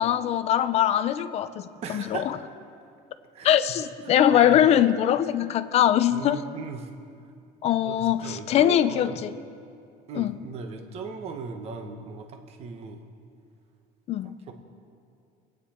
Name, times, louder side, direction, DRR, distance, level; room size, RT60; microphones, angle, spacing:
voice 1, 0.0-2.4 3.4-6.4 7.6-9.4 10.1-10.4 14.1-14.3, left 10 dB, 35° left, 13 dB, 0.5 m, -22 dB
voice 2, 1.8-2.4 3.3-3.5 4.0-4.6 6.1-6.9 7.8-9.2 10.1-13.0 14.5-14.6, right 5 dB, 35° right, 4 dB, 1.1 m, -38 dB
26.0 x 9.4 x 4.3 m, 2.4 s
cardioid pair, 175°, 18 cm